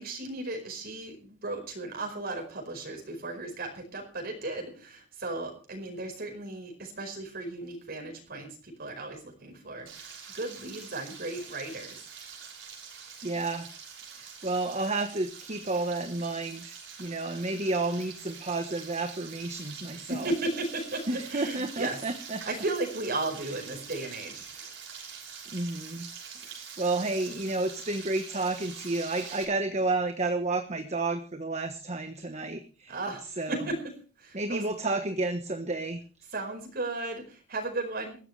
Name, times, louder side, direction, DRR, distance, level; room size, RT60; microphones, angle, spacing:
voice 1, 0.0-12.0 20.1-22.0 22.4-24.7 32.9-33.8 34.2-34.7 36.3-38.2, right 2 dB, 55° right, 2 dB, 5.0 m, -35 dB
Frying (food), 9.9-29.4, right 6 dB, 80° right, 6.1 m, -45 dB
voice 2, 13.2-13.7 14.1-20.3 21.1-22.4 23.5-23.6 24.5-24.7 25.5-26.1 26.4-33.0 33.4-33.6 34.3-36.0, right 2 dB, 35° right, 7 dB, 1.3 m, -31 dB
20.5 x 15.0 x 3.3 m, 0.38 s
head